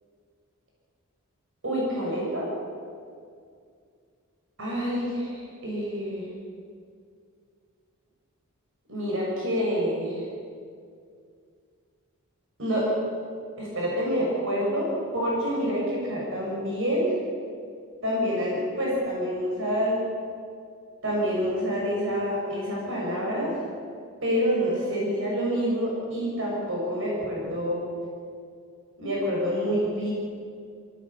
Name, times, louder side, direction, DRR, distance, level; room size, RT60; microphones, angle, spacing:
voice 1, 1.6-2.5 4.6-6.3 8.9-10.2 12.6-12.9 13.6-17.1 18.0-20.0 21.0-23.6 24.2-27.8 29.0-30.1, equal, 60° right, -4 dB, 6.7 m, -27 dB
23.0 x 15.5 x 8.5 m, 2.3 s
head